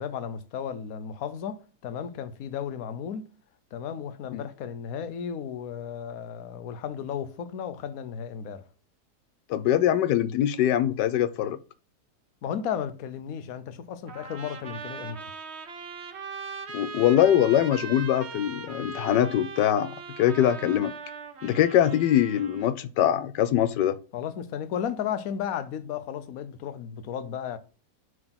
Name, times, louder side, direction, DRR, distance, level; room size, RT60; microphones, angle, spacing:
voice 1, 0.0-3.3 3.7-8.6 12.4-15.2 24.1-27.6, left 8 dB, 60° left, 1.2 m, -34 dB
voice 2, 9.5-11.6 16.7-20.9 21.4-24.0, left 11 dB, 80° left, 1.2 m, -23 dB
Trumpet, 14.1-22.7, right 5 dB, 45° right, 1.2 m, -40 dB
7.7 x 4.0 x 6.0 m
omnidirectional pair, 1.8 m